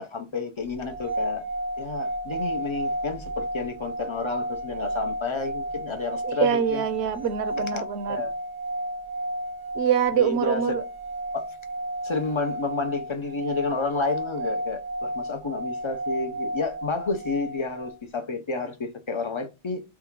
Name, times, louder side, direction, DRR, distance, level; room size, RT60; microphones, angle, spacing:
voice 1, 0.0-1.4 1.8-6.8 7.6-8.3 10.1-10.6 11.3-11.6 12.0-19.8, left 4 dB, 40° left, 0.4 m, -30 dB
sound 1, 0.8-17.9, right 1 dB, 35° right, 0.4 m, -32 dB
voice 2, 6.2-8.2 9.7-10.8, right 8 dB, 75° right, 0.9 m, -25 dB
3.6 x 2.4 x 4.5 m
omnidirectional pair, 1.1 m